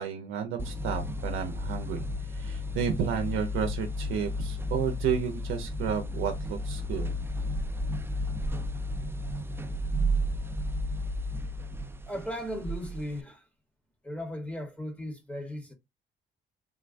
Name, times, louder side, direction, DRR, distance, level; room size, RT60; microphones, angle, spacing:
voice 1, 0.0-7.1, right 8 dB, 85° right, 0.6 m, -32 dB
sound 1, 0.6-13.2, left 1 dB, 10° right, 0.3 m, -33 dB
voice 2, 12.1-13.5 14.0-15.7, left 1 dB, 5° left, 0.9 m, -36 dB
3.7 x 2.2 x 2.5 m
cardioid pair, 90°, 20 cm